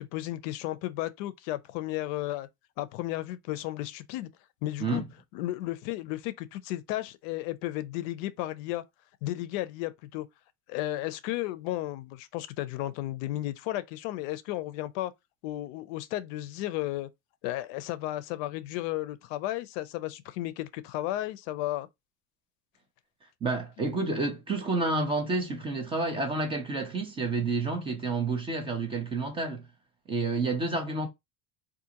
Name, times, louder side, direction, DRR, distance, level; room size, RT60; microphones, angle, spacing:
voice 1, 0.0-2.5 2.8-4.3 4.6-5.0 5.3-8.8 9.2-10.3 10.7-15.1 15.4-17.1 17.4-21.9 23.8-23.9, left 15 dB, 70° left, 0.5 m, -34 dB
voice 2, 23.4-29.6 30.1-31.1, right 3 dB, 15° right, 0.4 m, -29 dB
3.6 x 2.5 x 2.8 m
cardioid pair, 170°, 38 cm